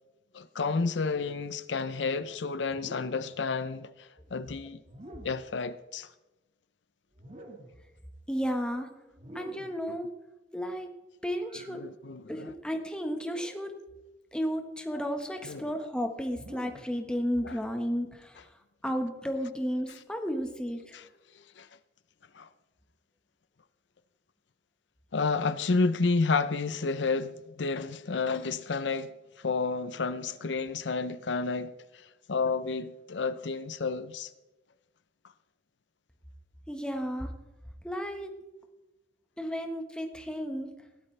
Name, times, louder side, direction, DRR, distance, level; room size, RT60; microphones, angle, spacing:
voice 1, 0.3-4.8 5.2-6.1 11.7-12.5 15.4-15.7 17.4-17.6 20.9-21.1 21.6-21.7 22.3-22.5 25.1-29.1 29.4-31.7 32.3-34.3, left 4 dB, 80° left, 0.6 m, -30 dB
sound 1, 2.7-3.4 4.8-5.5 7.1-7.9 9.1-9.8 11.4-11.8 13.2-13.7 14.8-15.2 16.3-17.0, right 1 dB, 35° right, 1.9 m, -48 dB
voice 2, 8.3-8.9 9.3-10.2 10.5-10.9 11.2-11.8 12.3-13.7 14.3-18.4 18.8-20.9 36.7-37.3 37.8-38.3 39.4-40.7, equal, 5° left, 1.3 m, -33 dB
17.5 x 12.5 x 3.3 m
head